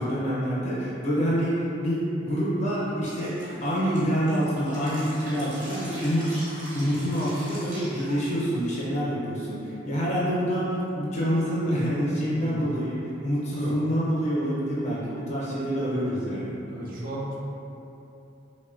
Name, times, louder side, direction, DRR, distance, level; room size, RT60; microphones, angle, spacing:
voice 1, 0.0-6.4 6.7-12.9 13.2-16.6, equal, 35° left, -8 dB, 0.5 m, -27 dB
Drip, 3.1-8.6, right 1 dB, 80° right, 1.1 m, -41 dB
voice 2, 6.8-7.1 12.3-12.7 13.6-13.8 16.7-17.4, right 1 dB, 45° right, -4 dB, 0.4 m, -36 dB
3.0 x 2.1 x 2.4 m, 2.9 s
head